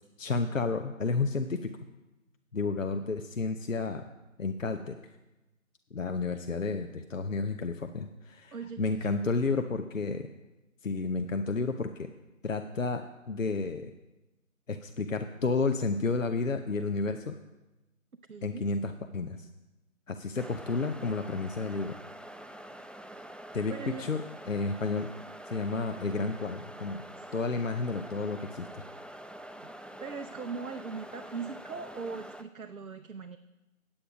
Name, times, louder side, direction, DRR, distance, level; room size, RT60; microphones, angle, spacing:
voice 1, 0.2-1.7 2.5-4.0 4.4-5.0 5.9-10.3 10.8-12.1 12.4-13.9 14.7-17.3 18.4-19.5 20.1-21.9 23.5-23.7 24.0-24.2 24.5-25.1 25.5-27.0 27.3-28.7, left 3 dB, 70° left, 7 dB, 0.7 m, -31 dB
voice 2, 8.5-9.4 18.3-18.7 23.1-23.2 23.7-24.1 27.1-27.3 29.6-29.7 30.0-33.4, right 5 dB, 90° right, 8 dB, 0.7 m, -41 dB
sound 1, 20.4-32.4, right 1 dB, 5° left, 0.3 m, -46 dB
8.8 x 8.7 x 5.0 m, 1.0 s
figure-of-eight pair, 170°, 41 cm